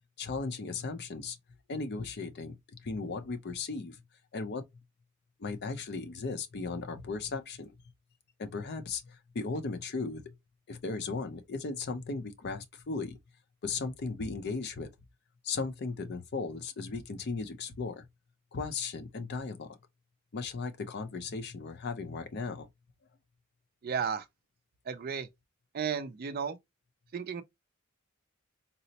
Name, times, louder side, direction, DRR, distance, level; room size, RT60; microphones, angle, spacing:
voice 1, 0.2-1.4 1.7-2.5 2.8-4.0 4.3-4.6 5.4-7.7 8.4-10.2 10.7-13.2 13.6-14.9 15.4-18.1 18.5-19.8 20.3-22.7, left 4 dB, 50° left, 0.5 m, -36 dB
voice 2, 23.8-24.3 24.9-25.3 25.7-26.6 27.1-27.4, right 6 dB, 45° right, 0.4 m, -33 dB
4.0 x 2.0 x 2.7 m
head